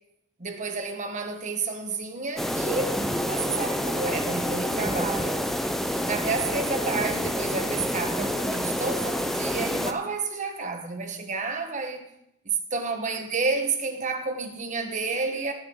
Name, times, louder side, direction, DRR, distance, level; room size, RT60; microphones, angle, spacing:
voice 1, 0.4-3.0 3.2-5.5 6.1-12.1 12.4-15.5, right 4 dB, 35° right, 1.2 m, -30 dB
sound 1, 2.4-9.9, equal, ahead, 0.6 m, -28 dB
18.0 x 6.6 x 3.8 m
head